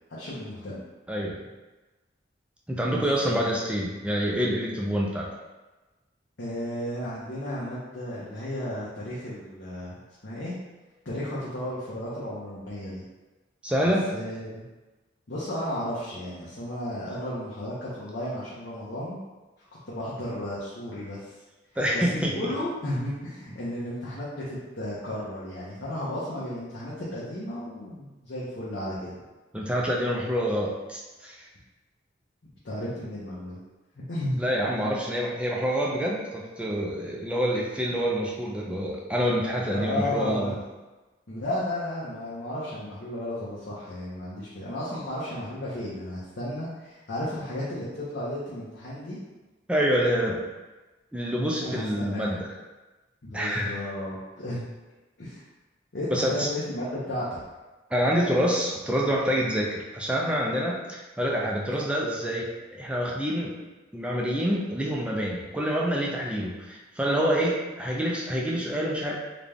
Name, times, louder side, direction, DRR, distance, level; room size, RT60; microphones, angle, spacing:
voice 1, 0.1-0.8 2.9-3.5 6.4-10.0 10.2-10.6 11.0-13.0 14.1-14.6 15.3-19.2 19.6-21.3 21.7-29.1 32.6-33.6 34.0-34.4 34.7-34.9 37.0-37.1 39.7-40.5 41.3-49.2 51.6-52.4 53.2-54.6 55.2-55.4 55.9-57.3, left 1 dB, 60° left, -8 dB, 0.7 m, -33 dB
voice 2, 1.1-1.4 2.7-5.3 13.6-14.1 21.8-22.3 29.5-31.5 34.4-40.6 49.7-50.5 51.1-52.5 53.3-53.7 56.1-56.5 57.9-63.5 63.9-69.2, equal, 5° right, -3 dB, 0.3 m, -27 dB
3.9 x 2.3 x 3.3 m, 1.2 s
head